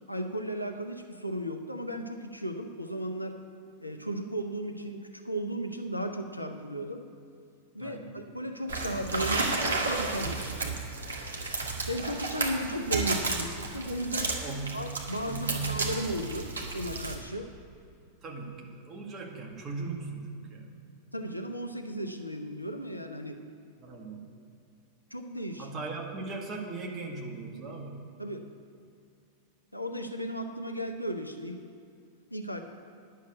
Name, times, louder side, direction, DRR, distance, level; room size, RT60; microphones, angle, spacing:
voice 1, 0.0-3.4 3.8-7.0 7.7-10.8 11.9-14.4 14.7-17.5 21.1-23.4 25.1-25.7 28.2-28.5 29.7-31.6 32.3-32.6, right 1 dB, 90° left, 5 dB, 0.8 m, -35 dB
voice 2, 7.8-8.2 14.4-14.8 15.3-15.9 18.2-20.7 23.8-24.3 25.6-28.1, right 3 dB, 25° right, -1 dB, 1.8 m, -38 dB
sound 1, 8.7-17.1, right 3 dB, 70° right, 1.5 m, -32 dB
10.0 x 6.6 x 8.2 m, 2.4 s
figure-of-eight pair, 90°, 0 cm